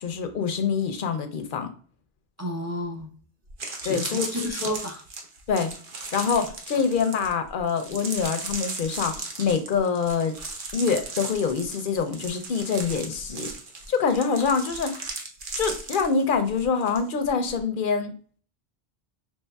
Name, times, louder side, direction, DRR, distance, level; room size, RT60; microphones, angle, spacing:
voice 1, 0.0-1.7 3.8-4.3 4.6-4.7 5.5-5.7 6.1-10.3 10.7-13.5 13.9-15.0 15.6-18.1, left 5 dB, 60° left, 8 dB, 0.7 m, -25 dB
voice 2, 2.4-3.1 3.8-5.0, equal, 25° right, 1 dB, 0.3 m, -31 dB
sound 1, 3.0-3.1 3.5-17.0 17.2-17.6, right 3 dB, 55° right, 0.9 m, -36 dB
5.4 x 3.0 x 2.2 m, 0.43 s
omnidirectional pair, 1.1 m